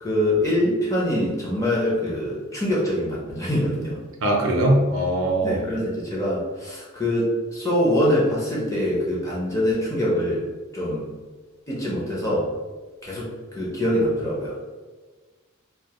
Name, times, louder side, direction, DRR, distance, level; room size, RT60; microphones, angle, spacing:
voice 1, 0.0-4.0 5.4-10.5 10.7-11.1 11.7-12.5 13.0-14.6, left 1 dB, 15° left, -5 dB, 0.6 m, -24 dB
voice 2, 4.2-5.6, right 1 dB, 65° right, 1 dB, 0.4 m, -21 dB
2.1 x 2.0 x 2.8 m, 1.3 s
head